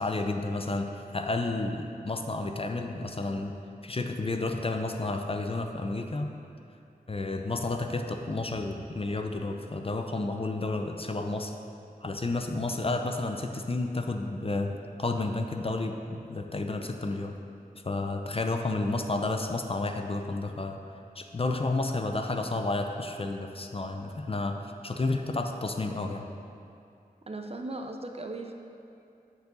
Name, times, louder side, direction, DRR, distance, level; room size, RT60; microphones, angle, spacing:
voice 1, 0.0-3.6 3.8-6.3 7.1-11.6 12.0-17.3 17.8-20.8 21.2-26.2, left 2 dB, 35° left, 4 dB, 0.5 m, -31 dB
voice 2, 27.3-28.5, right 2 dB, 40° right, 4 dB, 0.6 m, -37 dB
9.3 x 4.7 x 3.9 m, 2.6 s
wide cardioid pair, 60°, 16 cm